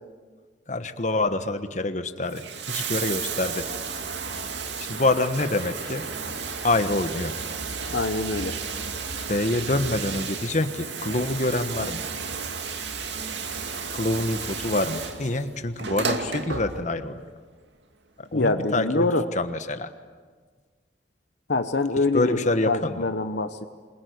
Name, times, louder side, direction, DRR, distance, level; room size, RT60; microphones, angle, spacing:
voice 1, 0.7-3.7 4.9-6.0 6.6-7.3 9.3-12.1 13.9-17.2 18.2-19.9 22.1-23.1, left 2 dB, 45° left, 9 dB, 1.4 m, -26 dB
Bathtub (filling or washing), 2.2-17.1 18.3-18.4, right 5 dB, 85° right, 2.4 m, -33 dB
voice 2, 7.9-8.6 18.3-19.2 21.5-22.4 22.7-23.7, left 3 dB, 70° left, 9 dB, 1.1 m, -24 dB
27.5 x 22.5 x 9.5 m, 1.5 s
head